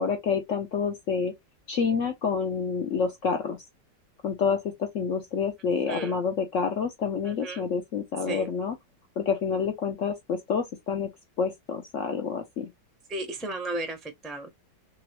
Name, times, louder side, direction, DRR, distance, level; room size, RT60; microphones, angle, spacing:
voice 1, 0.0-1.3 1.7-3.6 4.2-8.7 9.2-11.1 11.4-12.7, left 6 dB, 65° left, 0.8 m, -28 dB
voice 2, 5.8-6.2 7.2-7.7 8.3-8.5 13.1-14.5, right 2 dB, ahead, 0.3 m, -34 dB
3.7 x 3.0 x 2.9 m
omnidirectional pair, 1.9 m